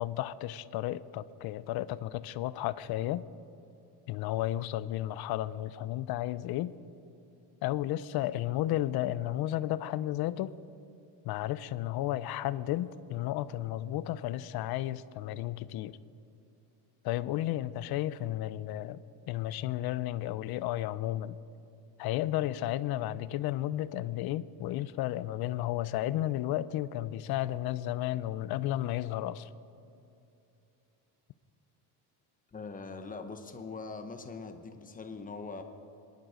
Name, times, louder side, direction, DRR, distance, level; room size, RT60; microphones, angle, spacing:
voice 1, 0.0-3.2 4.1-6.7 7.6-10.5 11.2-16.0 17.0-19.0 19.3-21.4 22.0-29.5, left 14 dB, 60° left, 0.6 m, -33 dB
voice 2, 32.5-35.6, left 4 dB, 20° left, 1.0 m, -42 dB
25.5 x 11.0 x 5.0 m
cardioid pair, 160°, 43 cm